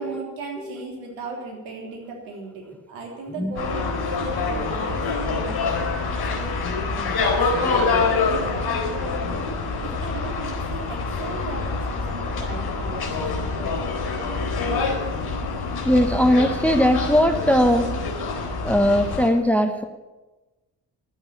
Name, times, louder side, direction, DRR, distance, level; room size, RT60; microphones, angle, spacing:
voice 1, 0.0-6.0 6.2-7.5 8.1-9.5 9.8-13.8, right 4 dB, 70° right, 0 dB, 3.4 m, -36 dB
sound 1, 3.5-19.3, left 4 dB, 45° left, 4.3 m, -26 dB
voice 2, 15.8-17.9 18.6-19.8, equal, 5° left, 8 dB, 1.1 m, -19 dB
11.5 x 8.8 x 9.4 m, 1.2 s
figure-of-eight pair, 40°, 49 cm